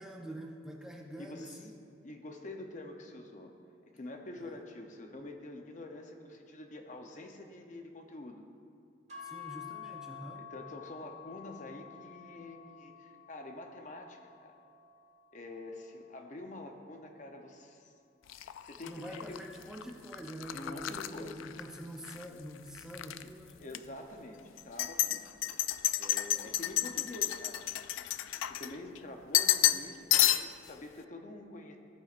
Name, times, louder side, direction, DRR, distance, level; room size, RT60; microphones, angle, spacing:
voice 1, 0.0-1.7 4.4-4.5 9.2-10.4 18.8-23.6, right 1 dB, 5° right, 0 dB, 0.6 m, -45 dB
voice 2, 1.2-1.6 2.0-3.6 3.9-8.5 10.4-14.6 15.3-17.9 18.4-19.4 20.5-21.4 23.6-25.3 26.0-27.6 28.4-31.8, left 2 dB, 40° left, 4 dB, 0.7 m, -46 dB
sound 1, 9.1-17.3, left 8 dB, 35° right, 1.4 m, -51 dB
sound 2, 18.3-22.3 22.6-23.2 23.7-23.8 24.6-29.0 29.3-29.9 30.1-30.7, left 13 dB, 90° left, 0.3 m, -31 dB
14.5 x 8.4 x 2.5 m, 2.4 s
head